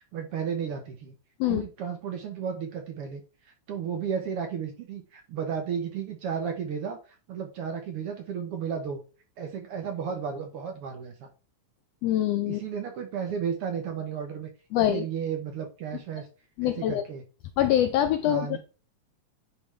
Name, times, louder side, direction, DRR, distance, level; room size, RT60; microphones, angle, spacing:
voice 1, 0.1-1.1 1.5-9.0 9.4-11.3 12.5-14.5 14.7-16.3 16.6-17.2 18.2-18.6, right 7 dB, 65° right, 4 dB, 1.5 m, -33 dB
voice 2, 12.0-12.6 14.7-15.0 16.6-17.0 17.6-18.6, left 12 dB, 80° left, 8 dB, 1.4 m, -24 dB
10.0 x 3.5 x 3.2 m, 0.34 s
omnidirectional pair, 3.3 m